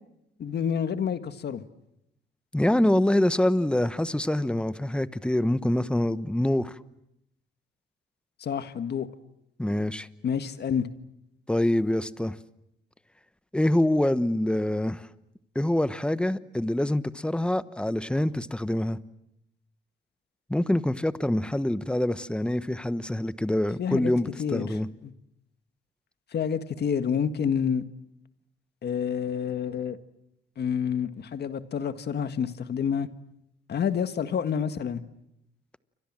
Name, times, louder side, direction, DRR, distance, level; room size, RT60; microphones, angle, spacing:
voice 1, 0.4-1.6 8.4-9.1 10.2-10.9 23.8-24.1 24.4-24.7 25.0-25.1 26.3-27.8 28.8-30.0 30.6-33.1 33.7-35.0, left 7 dB, 55° left, 10 dB, 1.8 m, -28 dB
voice 2, 2.5-6.8 9.6-10.1 11.5-12.4 13.5-15.1 15.5-19.0 20.5-24.9, left 1 dB, 5° left, 14 dB, 1.1 m, -25 dB
29.5 x 25.0 x 7.6 m, 0.83 s
cardioid pair, 90°, 20 cm